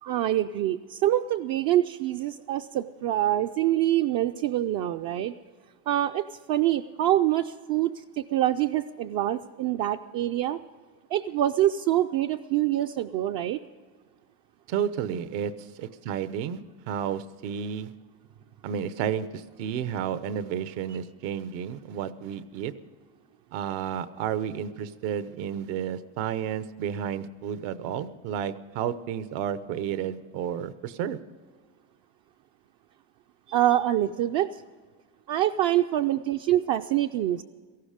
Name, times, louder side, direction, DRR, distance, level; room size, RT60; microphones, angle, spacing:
voice 1, 0.0-5.3 5.9-10.6 11.1-13.6 33.5-34.6 35.3-37.4, right 13 dB, 50° right, 5 dB, 0.5 m, -25 dB
voice 2, 14.7-16.6 16.9-17.9 18.6-22.7 23.5-31.2, right 9 dB, 75° right, 13 dB, 1.1 m, -31 dB
17.5 x 15.0 x 5.0 m, 1.5 s
cardioid pair, 150°, 48 cm